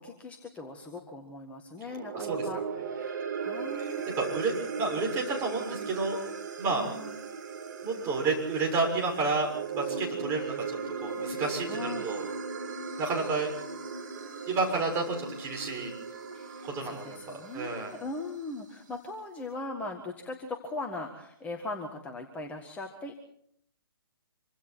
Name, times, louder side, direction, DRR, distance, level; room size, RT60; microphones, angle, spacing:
voice 1, 0.0-2.6 2.9-4.2 6.7-7.2 11.7-12.0 16.3-23.1, left 2 dB, 10° left, 2 dB, 1.8 m, -39 dB
sound 1, 1.8-18.3, right 5 dB, 50° right, 3.8 m, -37 dB
voice 2, 4.2-6.2 6.6-6.8 7.8-12.2 13.0-13.5 14.5-15.9 16.6-17.9, right 3 dB, 20° right, 0 dB, 6.7 m, -31 dB
26.5 x 25.0 x 4.6 m, 0.67 s
figure-of-eight pair, 130°, 13 cm